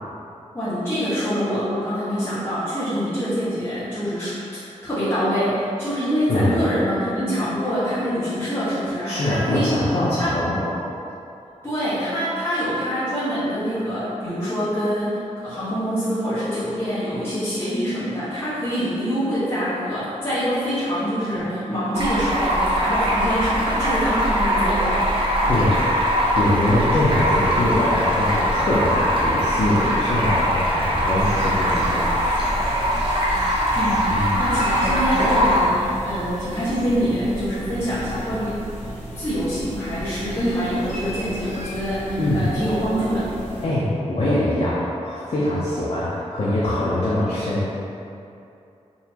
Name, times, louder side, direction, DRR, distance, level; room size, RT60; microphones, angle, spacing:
voice 1, 0.5-4.4 4.8-9.8 10.2-10.3 11.6-25.2 25.5-25.6 33.7-34.0 34.4-38.6 39.1-43.3, equal, 20° left, -15 dB, 1.2 m, -25 dB
voice 2, 6.3-6.6 9.0-10.7 25.2-25.8 26.2-32.1 34.1-34.4 42.2-42.5 43.6-47.7, left 1 dB, 55° left, -8 dB, 0.6 m, -23 dB
Stream, 22.0-35.6, equal, 45° right, 0.7 m, -21 dB
sound 1, 31.2-43.6, equal, 85° left, 0.9 m, -34 dB
3.9 x 2.9 x 2.8 m, 2.7 s
wide cardioid pair, 125°, 12 cm